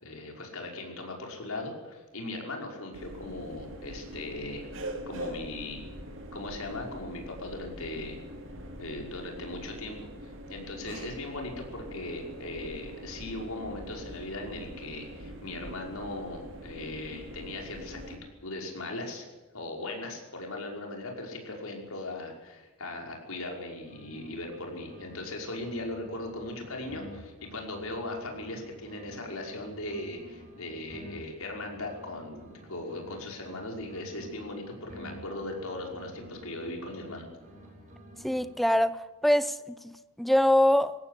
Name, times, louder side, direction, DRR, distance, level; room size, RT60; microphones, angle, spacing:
voice 1, 0.0-4.7 5.1-5.8 6.3-8.2 8.8-10.1 10.5-18.2 18.4-19.3 19.5-37.3, left 2 dB, 80° left, 5.5 m, -38 dB
sound 1, 2.9-18.2, right 1 dB, 60° right, 2.8 m, -43 dB
sound 2, 23.6-25.2 25.4-29.2 29.4-33.2 33.4-37.2 37.4-38.8, equal, 35° right, 7.8 m, -50 dB
voice 2, 38.2-39.0 39.2-39.5 39.8-40.9, left 1 dB, ahead, 0.7 m, -23 dB
20.5 x 16.5 x 8.3 m
head